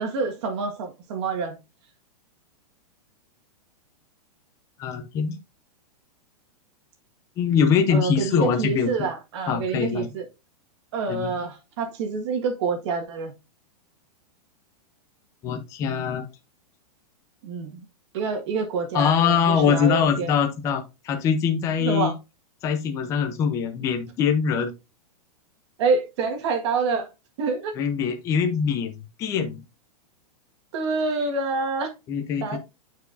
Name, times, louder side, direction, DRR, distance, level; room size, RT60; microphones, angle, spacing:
voice 1, 0.0-1.6 7.9-10.3 10.9-13.3 17.4-17.9 18.1-20.3 21.8-22.2 25.8-27.1 27.4-27.8 30.7-31.9 32.4-32.6, right 4 dB, 45° right, 1.6 m, -27 dB
voice 2, 4.8-5.4 7.4-8.9 9.5-10.1 11.1-11.3 15.4-16.3 18.9-22.1 22.6-24.7 27.8-29.6 32.1-32.6, left 7 dB, 15° left, 0.6 m, -23 dB
9.2 x 4.6 x 2.6 m
supercardioid pair, 170°, 20 cm